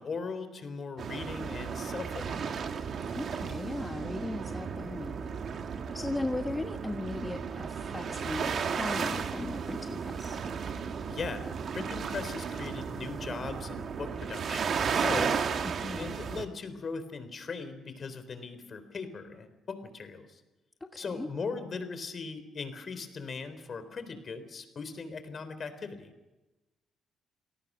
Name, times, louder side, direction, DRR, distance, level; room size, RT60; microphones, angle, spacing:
voice 1, 0.0-2.5 11.1-15.5 16.0-20.4 21.0-26.1, left 4 dB, 45° left, 10 dB, 3.7 m, -39 dB
sound 1, 1.0-16.4, right 6 dB, 55° right, 2.0 m, -34 dB
voice 2, 3.1-5.3 5.9-10.4 15.6-16.1 20.8-21.3, left 2 dB, 15° left, 5 dB, 1.3 m, -37 dB
27.5 x 18.0 x 6.3 m, 1.1 s
cardioid pair, 90°, 0 cm